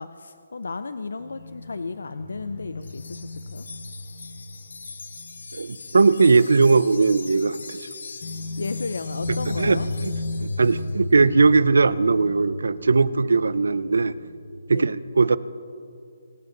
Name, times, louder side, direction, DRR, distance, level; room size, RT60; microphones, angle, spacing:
voice 1, 0.0-3.7 8.6-9.9 14.7-14.9, left 4 dB, 85° left, 11 dB, 0.6 m, -34 dB
sound 1, 1.2-6.6 6.9-7.0 8.2-14.8, left 2 dB, 45° left, 1.6 m, -34 dB
Wind chime, 2.8-11.0, left 4 dB, 70° left, 1.1 m, -42 dB
voice 2, 5.5-7.9 9.6-10.1 10.4-14.1 14.7-15.4, right 4 dB, 90° right, 17 dB, 0.6 m, -19 dB
24.5 x 11.5 x 4.0 m, 2.5 s
hypercardioid pair, 175°, 0 cm